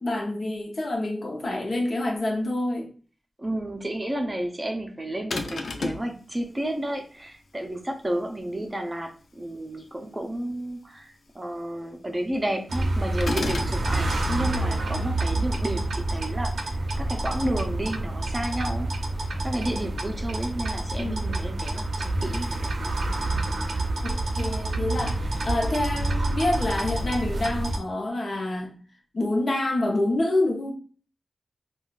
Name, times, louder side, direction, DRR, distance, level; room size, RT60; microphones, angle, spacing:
voice 1, 0.0-2.9 21.0-21.5 24.0-28.8 29.1-30.7, left 1 dB, 55° left, 0.8 m, -27 dB
voice 2, 3.4-18.9 19.4-22.8, right 1 dB, 20° right, 0.5 m, -32 dB
sound 1, 5.3-6.1 13.2-13.8, left 3 dB, 75° left, 0.4 m, -29 dB
sound 2, 12.7-27.8, right 2 dB, 80° right, 0.5 m, -28 dB
3.6 x 2.3 x 2.4 m
wide cardioid pair, 90°, 0 cm